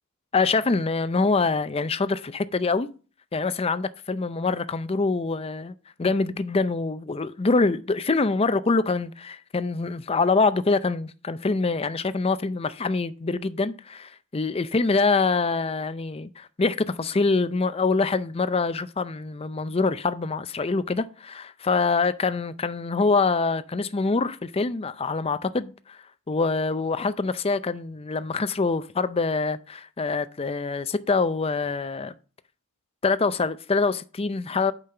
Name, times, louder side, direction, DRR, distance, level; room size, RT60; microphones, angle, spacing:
voice 1, 0.3-2.9 3.3-5.7 6.0-26.0 26.3-32.1 33.0-34.7, left 3 dB, 25° left, 0.5 m, -25 dB
8.5 x 5.3 x 5.8 m
head